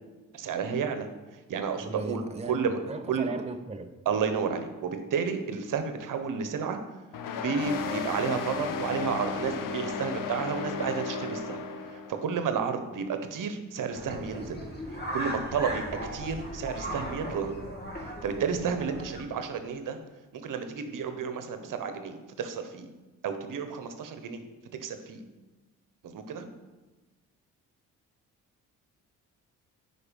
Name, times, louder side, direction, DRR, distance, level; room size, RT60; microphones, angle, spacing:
voice 1, 0.3-1.1 1.5-2.8 3.1-3.3 4.0-6.8 7.3-11.6 11.9-14.6 14.9-15.8 16.1-17.5 18.0-20.0 20.3-22.9 23.2-24.5 24.8-25.2 26.0-26.5, right 6 dB, 70° right, 8 dB, 1.1 m, -31 dB
voice 2, 1.8-3.9, right 4 dB, 20° right, 7 dB, 0.7 m, -37 dB
sound 1, 7.1-12.2, left 6 dB, 70° left, 0.9 m, -34 dB
sound 2, 13.9-19.2, equal, 30° left, 2.4 m, -37 dB
9.7 x 4.8 x 5.3 m, 1.2 s
cardioid pair, 75°, 33 cm